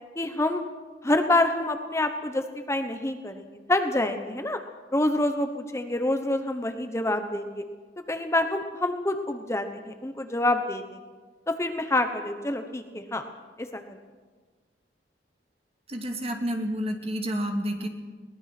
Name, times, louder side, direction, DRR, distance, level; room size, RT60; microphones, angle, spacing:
voice 1, 0.2-0.6 1.0-4.6 4.9-7.6 8.1-11.0 11.5-13.2 13.6-14.0, left 1 dB, 15° left, 6 dB, 1.1 m, -27 dB
voice 2, 15.9-17.9, equal, 35° right, 4 dB, 2.3 m, -29 dB
22.0 x 19.5 x 6.0 m, 1.4 s
head